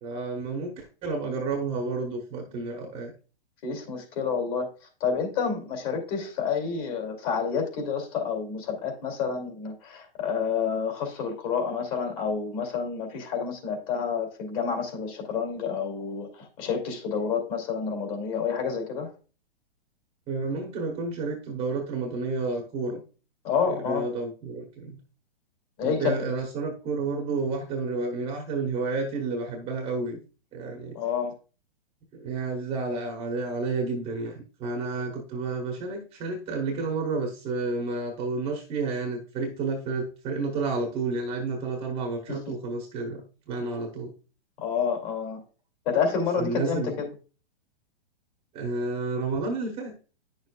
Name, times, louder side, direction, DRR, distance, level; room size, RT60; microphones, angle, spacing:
voice 1, 0.0-3.1 20.3-23.0 23.7-25.0 25.8-30.2 30.5-31.0 32.1-44.1 46.4-46.9 48.5-49.9, right 3 dB, 20° right, 2 dB, 1.1 m, -30 dB
voice 2, 3.6-4.7 5.0-19.1 23.4-24.0 25.8-26.2 30.9-31.3 42.3-42.5 44.6-45.4 45.9-47.1, left 6 dB, 35° left, 3 dB, 2.7 m, -29 dB
10.0 x 6.5 x 2.3 m, 0.36 s
hypercardioid pair, 160°, 31 cm